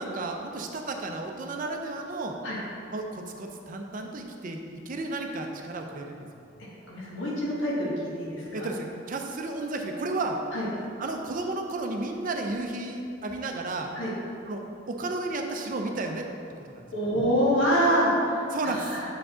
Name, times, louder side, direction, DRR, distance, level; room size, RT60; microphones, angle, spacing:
voice 1, 0.0-2.3 2.9-6.3 8.5-10.4 11.0-13.9 14.5-16.3 16.7-16.9 18.5-19.0, right 2 dB, 45° right, 3 dB, 0.6 m, -33 dB
voice 2, 6.9-7.9 8.2-8.7 10.5-10.7 13.9-14.1 16.9-18.4 18.6-19.0, equal, 75° left, -5 dB, 1.5 m, -25 dB
6.6 x 4.8 x 3.7 m, 2.6 s
head